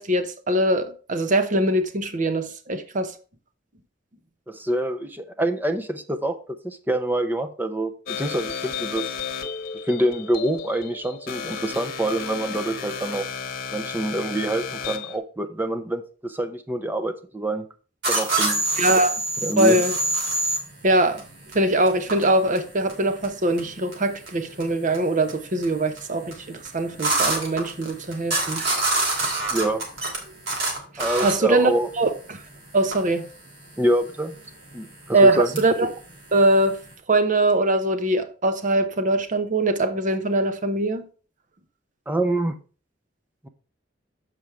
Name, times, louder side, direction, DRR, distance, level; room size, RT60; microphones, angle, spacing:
voice 1, 0.0-3.1 18.8-19.2 19.6-19.9 20.8-21.2 21.5-28.6 31.2-31.7 32.0-32.4 32.7-33.3 35.1-35.9 36.3-36.8 37.1-41.1, right 2 dB, 40° right, 0.8 m, -22 dB
voice 2, 4.5-6.4 6.6-9.1 9.9-13.3 13.7-17.7 18.1-18.6 19.4-19.8 29.5-29.8 31.0-31.9 33.8-34.4 34.7-35.5 42.1-42.6 43.4-43.5, right 1 dB, 10° right, 0.6 m, -26 dB
sound 1, 8.1-15.2, left 6 dB, 50° left, 1.1 m, -33 dB
sound 2, 18.0-36.9, right 2 dB, 60° right, 2.8 m, -27 dB
7.1 x 5.1 x 4.6 m
head